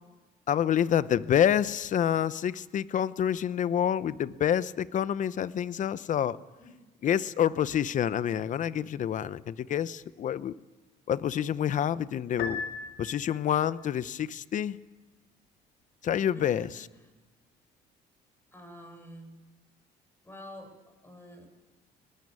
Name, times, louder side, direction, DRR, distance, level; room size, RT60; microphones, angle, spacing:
voice 1, 0.5-6.4 7.0-10.6 11.1-12.6 13.0-14.8 16.0-16.9, left 9 dB, 50° left, 16 dB, 0.8 m, -27 dB
Piano, 12.4-13.6, left 5 dB, 75° left, 2.3 m, -37 dB
voice 2, 16.3-16.7 18.5-19.3 20.2-20.7 21.0-21.5, equal, 15° left, 5 dB, 7.5 m, -47 dB
22.0 x 20.0 x 9.6 m, 1.2 s
cardioid pair, 110°, 17 cm